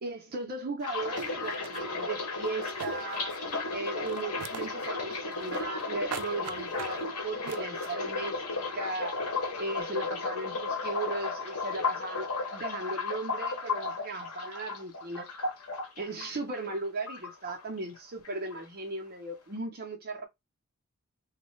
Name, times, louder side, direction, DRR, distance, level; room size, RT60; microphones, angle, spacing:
voice 1, 0.0-3.3 3.7-9.2 9.6-15.3 16.0-20.3, right 3 dB, 45° right, 0.6 m, -37 dB
sound 1, 0.8-16.8 17.1-18.0 18.2-18.6, left 3 dB, 85° left, 0.9 m, -34 dB
sound 2, 0.8-0.9 1.2-1.8 2.5-3.6 3.9-4.9 5.1-5.8 6.1-7.0 7.5-7.9, right 8 dB, 85° right, 0.4 m, -42 dB
3.1 x 2.2 x 3.0 m
head